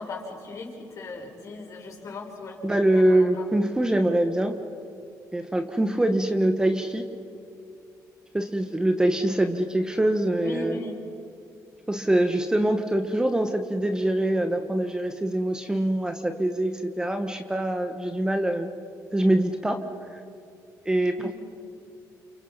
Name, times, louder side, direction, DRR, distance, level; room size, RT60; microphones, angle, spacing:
voice 1, 0.0-3.4 10.4-11.0 21.2-21.3, left 3 dB, 50° left, 0 dB, 6.2 m, -38 dB
voice 2, 2.6-4.6 5.3-7.1 8.3-10.8 11.9-18.7 19.1-19.8 20.1-20.2 20.8-21.2, right 1 dB, 10° right, 6 dB, 1.5 m, -24 dB
29.5 x 29.0 x 5.9 m, 2.5 s
cardioid pair, 110°, 7 cm